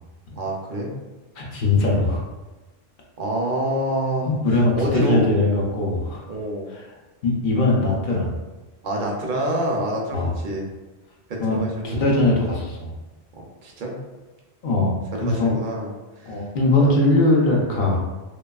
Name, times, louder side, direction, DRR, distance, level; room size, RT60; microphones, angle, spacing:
voice 1, 0.3-0.9 3.2-4.3 4.8-5.3 6.3-6.7 8.8-10.7 11.3-12.0 13.4-13.9 15.1-15.9 16.2-16.4 16.8-16.9, right 1 dB, 60° right, -1 dB, 0.6 m, -26 dB
voice 2, 1.4-2.2 4.3-6.2 6.7-6.8 7.2-8.4 10.1-10.4 11.4-11.6 11.8-12.9 14.6-14.9 15.2-15.5 16.3-18.0, left 2 dB, 60° left, -2 dB, 0.6 m, -20 dB
2.9 x 2.3 x 2.3 m, 1.2 s
omnidirectional pair, 1.1 m